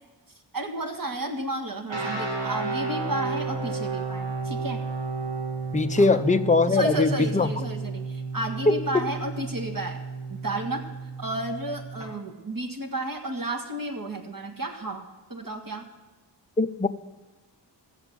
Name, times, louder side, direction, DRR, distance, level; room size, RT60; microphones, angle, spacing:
voice 1, 0.5-4.8 6.0-6.2 6.7-10.0 10.3-15.9, right 2 dB, 50° right, 4 dB, 1.8 m, -32 dB
sound 1, 1.9-12.1, right 4 dB, 90° right, 2.3 m, -32 dB
voice 2, 5.7-7.5 8.7-8.8 16.6-16.9, left 3 dB, 15° left, 8 dB, 0.6 m, -21 dB
14.5 x 8.0 x 7.5 m, 1.2 s
wide cardioid pair, 80°, 44 cm